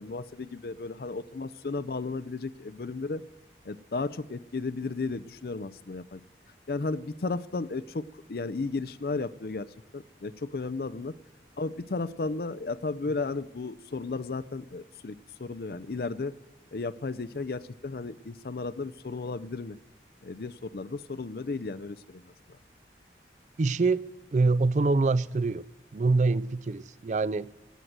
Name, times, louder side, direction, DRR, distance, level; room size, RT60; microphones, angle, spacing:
voice 1, 0.0-3.2 3.6-6.2 6.7-9.7 9.9-11.1 11.6-16.3 16.7-19.8 20.2-22.3, left 3 dB, 60° left, 0.5 m, -34 dB
voice 2, 23.6-24.0 24.3-25.6 25.9-27.5, right 3 dB, 40° right, 0.4 m, -25 dB
17.5 x 7.6 x 7.9 m
head